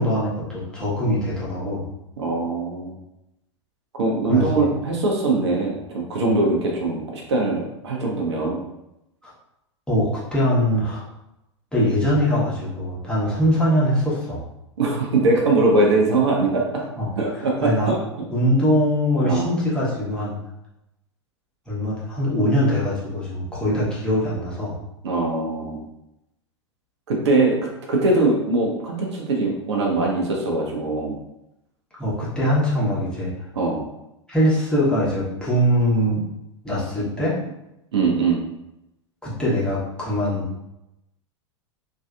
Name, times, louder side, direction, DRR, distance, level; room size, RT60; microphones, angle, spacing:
voice 1, 0.0-1.9 4.3-4.6 9.2-9.3 9.9-11.0 11.7-14.4 17.0-17.1 17.6-17.9 18.3-20.4 21.7-24.8 32.0-33.3 34.3-36.2 36.6-37.4 39.2-40.4, equal, 5° left, -8 dB, 1.0 m, -22 dB
voice 2, 2.2-2.9 3.9-8.6 14.8-16.8 17.2-18.0 19.2-19.5 25.0-25.8 27.1-31.2 33.5-33.8 37.9-38.4, right 2 dB, 65° right, -1 dB, 0.7 m, -22 dB
3.1 x 2.7 x 2.4 m, 0.88 s
figure-of-eight pair, 90°, 16 cm